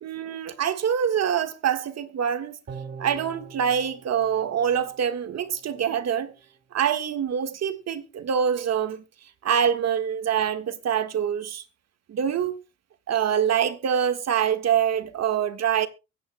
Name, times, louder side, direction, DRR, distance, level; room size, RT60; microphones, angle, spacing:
voice 1, 0.0-2.6 3.0-6.3 6.7-9.0 9.4-11.6 12.1-12.6 13.1-15.9, right 8 dB, 60° right, 1.6 m, -25 dB
sound 1, 2.7-6.0 6.4-6.5, right 5 dB, 40° right, 2.3 m, -43 dB
23.0 x 10.0 x 2.2 m
cardioid pair, 90°, 30 cm